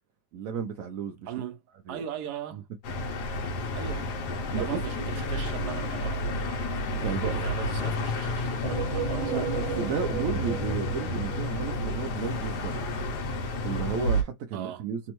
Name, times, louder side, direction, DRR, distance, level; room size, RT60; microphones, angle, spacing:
voice 1, 0.3-1.3 1.9-2.0 2.5-2.6 4.5-4.8 6.9-7.5 9.3-12.8 13.6-15.1, right 6 dB, 65° right, 0.9 m, -33 dB
voice 2, 1.3-1.6 1.9-2.7 3.7-4.2 4.5-6.8 7.2-9.4 14.5-14.9, right 9 dB, 85° right, 1.3 m, -39 dB
sound 1, 2.8-14.2, left 1 dB, 85° left, 1.4 m, -30 dB
sound 2, 8.6-12.2, right 6 dB, 30° right, 0.4 m, -35 dB
3.4 x 2.0 x 3.0 m
omnidirectional pair, 1.7 m